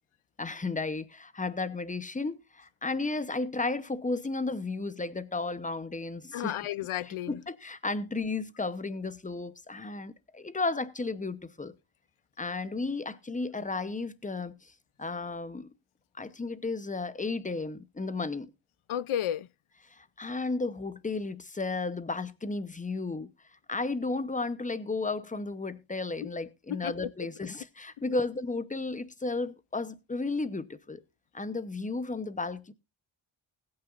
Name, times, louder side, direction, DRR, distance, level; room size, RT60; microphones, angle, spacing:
voice 1, 0.4-6.6 7.0-11.7 12.4-14.7 15.0-15.7 16.2-18.5 19.8-23.3 23.7-31.0 31.3-32.7, left 3 dB, 15° left, 0.8 m, -33 dB
voice 2, 6.3-7.4 18.9-19.5 26.2-26.3 26.7-27.1, left 11 dB, 75° left, 0.7 m, -32 dB
20.5 x 8.9 x 2.5 m
wide cardioid pair, 170°, 49 cm